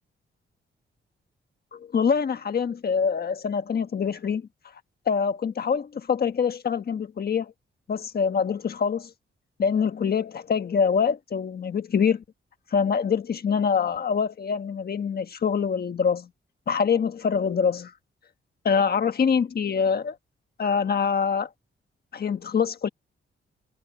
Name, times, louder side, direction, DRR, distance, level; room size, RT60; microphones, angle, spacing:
voice 1, 1.7-4.5 5.1-7.5 7.9-9.1 9.6-12.2 12.7-16.3 16.7-17.9 18.6-20.1 20.6-21.5 22.1-22.9, left 6 dB, 50° left, 1.4 m, -25 dB
wide cardioid pair, 125°, 21 cm